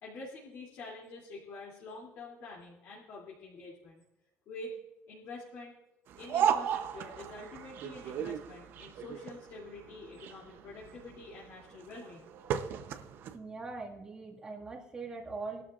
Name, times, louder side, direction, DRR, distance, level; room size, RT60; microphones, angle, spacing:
voice 1, 0.0-4.0 4.5-4.8 5.1-5.7 6.2-12.3, left 2 dB, 50° left, -5 dB, 2.9 m, -46 dB
sound 1, 6.1-13.4, right 9 dB, 50° right, 0.8 m, -35 dB
voice 2, 13.3-15.6, right 3 dB, 20° right, -1 dB, 1.9 m, -41 dB
21.0 x 12.5 x 2.5 m, 1.0 s
cardioid pair, 170°, 5 cm